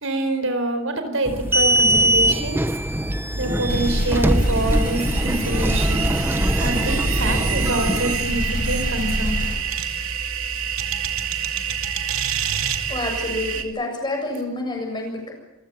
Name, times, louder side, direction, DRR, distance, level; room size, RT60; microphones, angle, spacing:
voice 1, 0.0-2.6 3.3-6.1 6.6-9.4, right 1 dB, 70° right, 8 dB, 4.5 m, -26 dB
sound 1, 1.3-8.1, right 1 dB, 10° right, 1.0 m, -22 dB
sound 2, 3.4-13.6, right 7 dB, 85° right, 2.5 m, -27 dB
sound 3, 3.7-9.6, left 1 dB, 40° left, 4.5 m, -27 dB
voice 2, 12.9-15.3, left 2 dB, 20° left, 1 dB, 7.4 m, -28 dB
27.5 x 16.0 x 8.8 m, 0.98 s
head